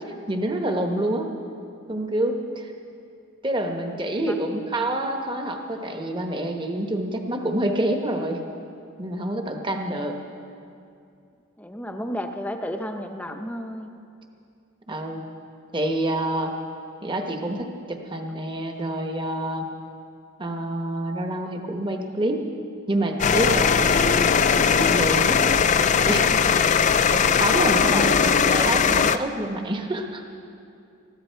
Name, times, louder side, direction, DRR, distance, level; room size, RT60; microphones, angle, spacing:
voice 1, 0.3-1.3 1.9-2.7 3.4-8.4 9.0-10.2 14.9-15.2 15.7-16.5 17.0-19.6 20.4-22.4 22.9-25.4 26.1-26.4 26.7-30.2, right 1 dB, 25° right, 4 dB, 1.1 m, -27 dB
voice 2, 4.2-4.7 11.6-13.9 27.8-28.1, equal, 5° left, 5 dB, 0.7 m, -33 dB
sound 1, 23.2-29.2, left 6 dB, 35° left, 0.4 m, -19 dB
21.0 x 14.5 x 4.6 m, 2.5 s
head